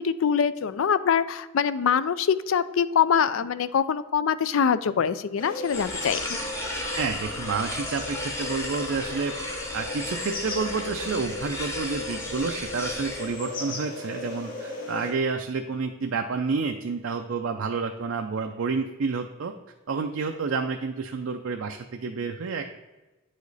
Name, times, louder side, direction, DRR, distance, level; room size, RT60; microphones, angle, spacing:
voice 1, 0.0-6.2, left 7 dB, 70° left, 15 dB, 0.4 m, -24 dB
sound 1, 5.4-15.1, left 2 dB, 40° left, 2.1 m, -36 dB
sound 2, 5.7-13.3, left 1 dB, 15° left, 0.9 m, -35 dB
voice 2, 6.9-9.3 9.7-19.5 19.9-22.8, right 4 dB, 65° right, 4 dB, 0.5 m, -29 dB
9.2 x 5.0 x 4.0 m, 1.2 s
head